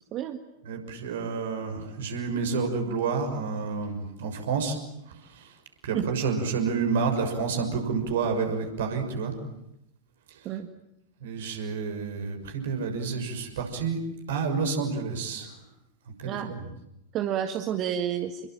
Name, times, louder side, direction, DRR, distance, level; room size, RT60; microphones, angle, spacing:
voice 1, 0.7-4.8 5.8-9.3 11.2-14.0 14.3-15.5 16.2-16.7, right 5 dB, 60° right, 5 dB, 6.2 m, -29 dB
voice 2, 17.1-18.4, right 10 dB, 35° right, 7 dB, 1.8 m, -29 dB
29.0 x 22.5 x 9.1 m, 0.86 s
figure-of-eight pair, 90°, 0 cm